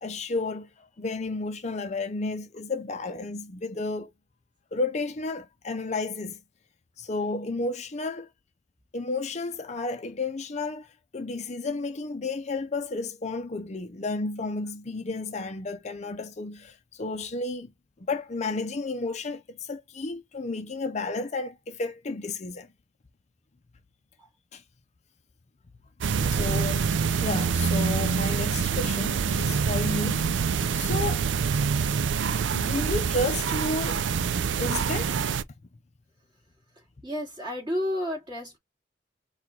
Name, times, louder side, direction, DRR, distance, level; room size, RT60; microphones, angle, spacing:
voice 1, 0.0-4.1 4.7-6.4 7.0-8.3 8.9-17.7 18.1-22.7 24.5-24.6 26.3-30.4 30.7-31.3 32.5-34.1 34.6-35.2, left 3 dB, 40° left, 0.6 m, -32 dB
sound 1, 26.0-35.4, right 6 dB, 80° right, 0.4 m, -26 dB
voice 2, 26.2-26.6 37.0-38.6, left 1 dB, 25° right, 2.4 m, -32 dB
4.7 x 2.4 x 3.8 m
head